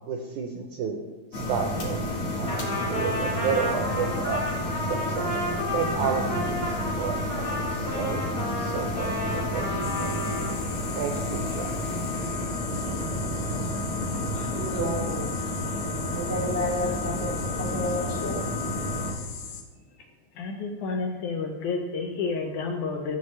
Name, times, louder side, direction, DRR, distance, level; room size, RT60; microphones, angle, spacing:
voice 1, 0.1-1.0 1.3-4.4 4.8-5.4 5.7-8.2 8.6-10.1 11.0-11.7, right 6 dB, 80° right, 2 dB, 1.7 m, -32 dB
sound 1, 1.3-19.1, left 1 dB, 55° left, 1.8 m, -30 dB
Trumpet, 2.5-10.6, left 1 dB, 20° left, 1.5 m, -32 dB
sound 2, 9.8-19.6, left 6 dB, 90° left, 1.4 m, -40 dB
voice 2, 14.2-15.3 16.1-17.3 17.6-18.4, left 1 dB, 15° right, -5 dB, 0.6 m, -31 dB
voice 3, 20.4-23.2, left 4 dB, 75° left, 2 dB, 1.9 m, -30 dB
13.0 x 6.8 x 3.2 m, 1.2 s
omnidirectional pair, 4.1 m